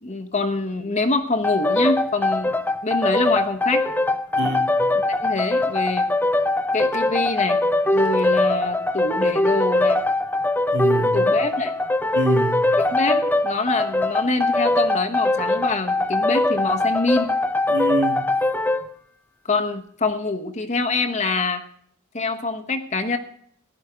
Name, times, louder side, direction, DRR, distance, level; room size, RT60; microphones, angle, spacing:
voice 1, 0.0-2.5 2.8-3.8 5.2-6.1 6.7-7.6 7.9-10.0 10.9-11.7 12.9-17.3 19.4-21.6 22.1-23.2, left 3 dB, 35° left, 5 dB, 1.1 m, -25 dB
sound 1, 1.4-18.9, left 2 dB, 10° left, 0.5 m, -21 dB
voice 2, 4.4-4.9 10.7-11.3 12.1-12.6 17.7-18.2, right 1 dB, 55° right, 4 dB, 1.9 m, -25 dB
15.5 x 11.5 x 5.1 m, 0.64 s
head